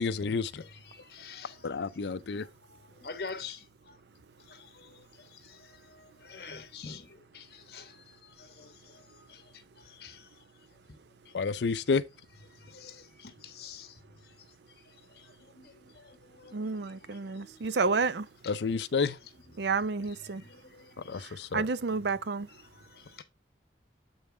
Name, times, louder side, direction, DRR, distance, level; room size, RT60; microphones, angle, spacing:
voice 1, 0.0-0.6 1.6-2.4 11.3-12.0 18.5-19.2 21.1-21.7, left 4 dB, 75° left, 0.5 m, -30 dB
voice 2, 0.5-4.0 4.4-11.0 11.2-11.4 12.5-17.8 18.4-18.5 19.0-19.1 19.5-21.3 22.0-22.2 22.5-23.2, left 5 dB, 55° left, 1.2 m, -49 dB
voice 3, 16.5-18.3 19.6-20.4 21.2-22.5, right 4 dB, 70° right, 0.5 m, -30 dB
8.0 x 5.4 x 3.3 m
head